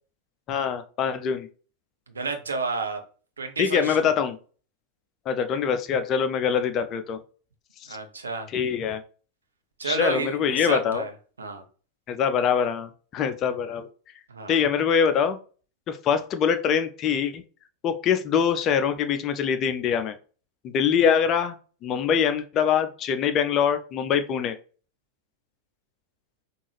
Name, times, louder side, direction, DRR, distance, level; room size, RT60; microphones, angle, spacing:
voice 1, 0.5-1.5 3.6-4.4 5.3-7.2 7.9-8.0 8.5-9.0 9.8-11.0 12.1-13.9 14.5-15.4 15.9-17.4 17.8-20.1 20.6-21.6 21.8-24.6, left 7 dB, 35° left, 9 dB, 0.5 m, -24 dB
voice 2, 2.1-3.0 3.4-4.1 7.9-8.5 9.8-11.1 11.4-11.6 14.3-14.6, right 3 dB, 70° right, 5 dB, 0.8 m, -30 dB
5.3 x 2.5 x 3.2 m, 0.39 s
figure-of-eight pair, 90°, 0 cm